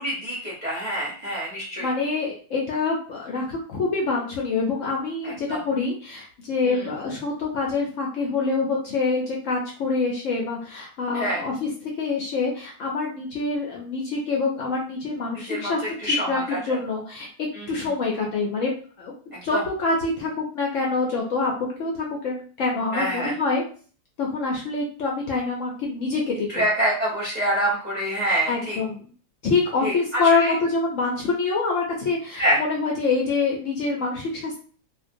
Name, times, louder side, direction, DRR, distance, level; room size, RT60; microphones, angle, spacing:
voice 1, 0.0-1.9 5.2-5.6 6.6-6.9 11.1-11.4 15.5-16.6 17.5-17.9 19.3-19.6 22.9-23.3 26.5-28.8 29.8-30.5 32.4-32.6, right 1 dB, 40° right, -6 dB, 0.7 m, -26 dB
voice 2, 1.8-18.7 19.0-23.6 24.2-26.6 28.5-29.1 29.4-34.6, left 3 dB, 65° left, -1 dB, 0.8 m, -26 dB
2.5 x 2.1 x 2.5 m, 0.41 s
omnidirectional pair, 1.7 m